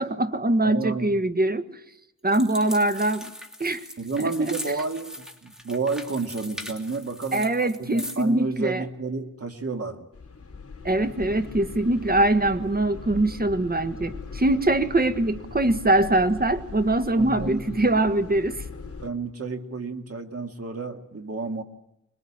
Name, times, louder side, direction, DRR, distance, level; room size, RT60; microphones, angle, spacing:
voice 1, 0.0-1.6 2.2-3.3 3.6-3.8 4.2-4.3 7.3-8.9 10.8-18.6, right 2 dB, 30° right, 10 dB, 1.6 m, -23 dB
voice 2, 0.6-1.1 4.0-10.1 17.2-17.8 19.0-21.6, right 4 dB, 50° right, 6 dB, 2.3 m, -31 dB
sound 1, 2.3-8.3, equal, ahead, 2.8 m, -40 dB
sound 2, 10.1-19.1, left 4 dB, 50° left, 3.5 m, -39 dB
26.0 x 21.0 x 8.7 m, 0.86 s
wide cardioid pair, 110°, 31 cm